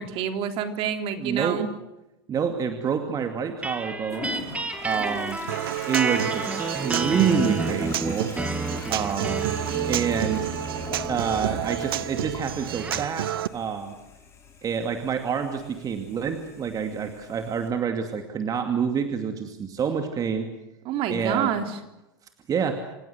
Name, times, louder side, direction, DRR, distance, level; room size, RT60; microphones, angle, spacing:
voice 1, 0.0-1.7 20.9-21.7, right 8 dB, 50° right, 7 dB, 3.4 m, -27 dB
voice 2, 1.1-1.7 2.3-4.3 4.8-5.4 5.8-8.4 8.9-9.4 9.9-10.5 11.0-13.9 14.6-20.5 21.1-21.5 22.5-22.9, right 7 dB, 30° right, 6 dB, 2.5 m, -27 dB
sound 1, 3.6-13.2, right 2 dB, 10° right, 2.9 m, -31 dB
Toilet flush, 4.1-17.7, left 4 dB, 25° left, 6.6 m, -42 dB
Human voice / Acoustic guitar, 5.5-13.5, right 12 dB, 80° right, 1.1 m, -30 dB
28.0 x 16.5 x 8.0 m, 0.94 s
hypercardioid pair, 100°, 12 cm